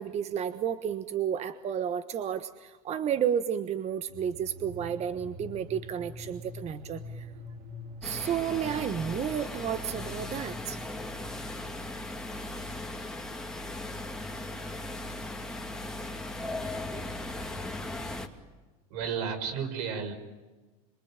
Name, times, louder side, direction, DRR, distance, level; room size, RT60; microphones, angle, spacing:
voice 1, 0.0-7.3 8.0-10.8, right 9 dB, 35° right, 11 dB, 1.3 m, -32 dB
sound 1, 4.1-11.9, left 2 dB, 50° right, 2.9 m, -45 dB
sound 2, 8.0-18.3, left 2 dB, 5° left, 2.5 m, -38 dB
voice 2, 18.9-20.1, right 6 dB, 80° right, 8 dB, 5.8 m, -32 dB
27.0 x 24.5 x 9.1 m, 1.2 s
supercardioid pair, 130°, 19 cm